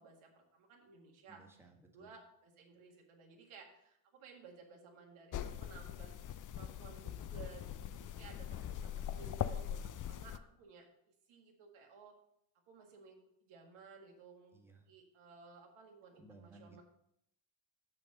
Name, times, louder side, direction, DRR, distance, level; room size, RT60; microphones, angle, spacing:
voice 1, 0.0-1.4 1.9-9.8 10.1-12.1 12.7-14.5 14.9-16.8, right 5 dB, 85° right, 1 dB, 2.0 m, -57 dB
voice 2, 1.3-2.1 7.7-8.2 8.5-8.9 14.5-14.9 16.1-16.8, right 2 dB, 5° right, 1 dB, 1.6 m, -61 dB
sound 1, 5.3-10.4, left 10 dB, 40° left, 0.5 m, -42 dB
6.6 x 6.5 x 5.3 m, 0.75 s
cardioid pair, 85°, 48 cm